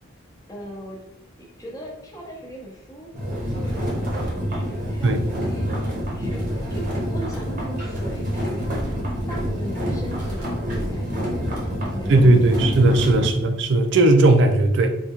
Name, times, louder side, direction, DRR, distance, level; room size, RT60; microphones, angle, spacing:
voice 1, 0.5-1.0 1.6-4.1 4.5-5.6 6.1-8.8 9.3-11.5 11.9-12.8, right 1 dB, 15° left, -2 dB, 0.6 m, -38 dB
sound 1, 3.1-13.3, equal, 40° right, 0.7 m, -27 dB
sound 2, 7.1-12.5, equal, 60° left, 0.8 m, -42 dB
voice 2, 12.1-14.9, right 2 dB, 55° right, 6 dB, 0.3 m, -17 dB
3.6 x 2.3 x 2.8 m, 0.85 s
head